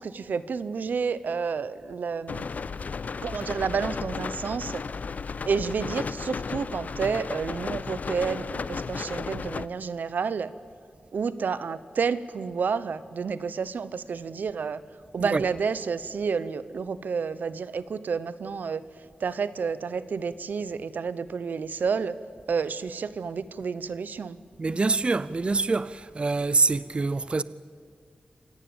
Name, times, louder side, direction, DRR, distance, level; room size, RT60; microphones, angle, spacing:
voice 1, 0.0-2.5 3.2-4.8 5.5-10.5 11.1-14.8 15.1-18.8 19.2-22.2 22.5-24.4, right 5 dB, 80° right, 0.9 m, -30 dB
sound 1, 2.3-9.7, left 5 dB, 60° left, 0.6 m, -34 dB
voice 2, 24.6-27.4, right 3 dB, 35° right, 0.6 m, -25 dB
26.5 x 17.5 x 8.8 m
wide cardioid pair, 90°, 3 cm